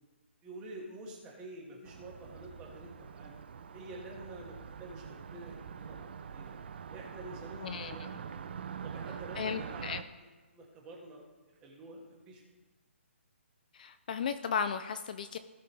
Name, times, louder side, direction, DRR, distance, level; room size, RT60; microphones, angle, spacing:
voice 1, 0.4-3.3 3.7-6.6 6.9-8.3 8.8-10.2 10.5-12.4, right 2 dB, 15° right, -1 dB, 1.7 m, -48 dB
Car passing by, 1.9-10.0, right 7 dB, 50° right, 0.5 m, -44 dB
voice 2, 7.6-8.1 9.4-10.0 13.7-15.4, left 7 dB, 40° left, 10 dB, 0.4 m, -35 dB
17.0 x 5.7 x 3.3 m, 1.3 s
hypercardioid pair, 165°, 7 cm